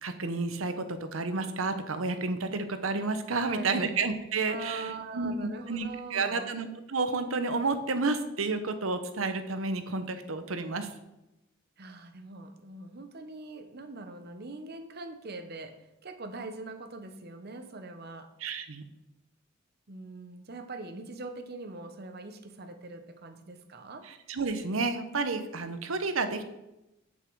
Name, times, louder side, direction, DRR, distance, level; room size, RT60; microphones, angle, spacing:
voice 1, 0.0-4.8 5.1-10.9 18.4-18.8 24.3-26.4, right 3 dB, 90° right, 9 dB, 0.9 m, -31 dB
voice 2, 3.4-3.9 4.5-6.5 11.8-18.3 19.9-24.1, right 3 dB, 50° right, 8 dB, 0.9 m, -42 dB
8.3 x 7.2 x 4.7 m, 0.93 s
head